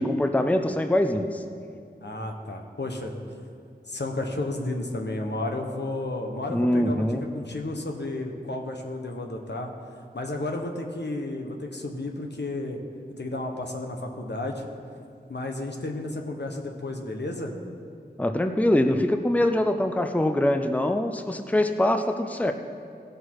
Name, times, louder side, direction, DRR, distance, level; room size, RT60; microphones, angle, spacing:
voice 1, 0.0-1.4 6.5-7.2 18.2-22.5, left 1 dB, 10° left, 7 dB, 0.6 m, -23 dB
voice 2, 2.0-3.1 3.9-9.7 10.1-12.8 13.2-14.7 15.3-17.5, left 2 dB, 70° left, 2 dB, 1.2 m, -32 dB
16.0 x 6.6 x 4.7 m, 2.4 s
wide cardioid pair, 45°, 18 cm